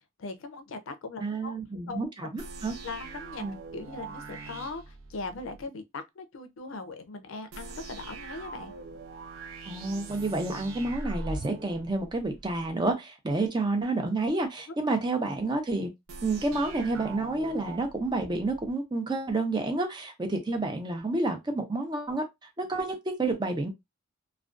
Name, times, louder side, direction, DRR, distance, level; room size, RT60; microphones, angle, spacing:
voice 1, 0.0-1.6 1.9-2.3 2.8-3.4 3.7-8.7, left 3 dB, 70° left, 0.5 m, -40 dB
voice 2, 1.2-2.7 3.4-3.6 9.7-15.9 16.2-22.2 22.6-23.7, right 2 dB, 20° right, 0.5 m, -29 dB
sound 1, 2.4-5.7 7.5-12.7 16.1-18.7, right 3 dB, 75° right, 0.5 m, -42 dB
2.4 x 2.2 x 2.3 m
head